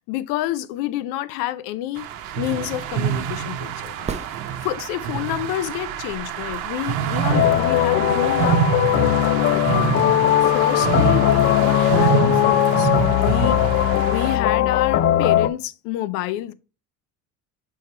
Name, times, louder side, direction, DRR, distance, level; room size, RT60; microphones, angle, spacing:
voice 1, 0.0-2.1 2.4-4.1 4.6-8.6 9.3-9.9 10.4-12.9 13.2-16.5, left 13 dB, 90° left, 0.6 m, -28 dB
sound 1, 2.0-14.4, right 9 dB, 75° right, 1.0 m, -26 dB
sound 2, 4.0-5.2 9.1-9.2, right 6 dB, 20° right, 0.6 m, -34 dB
sound 3, 7.3-15.5, left 12 dB, 45° left, 0.5 m, -19 dB
6.3 x 3.4 x 4.3 m
cardioid pair, 130°, 33 cm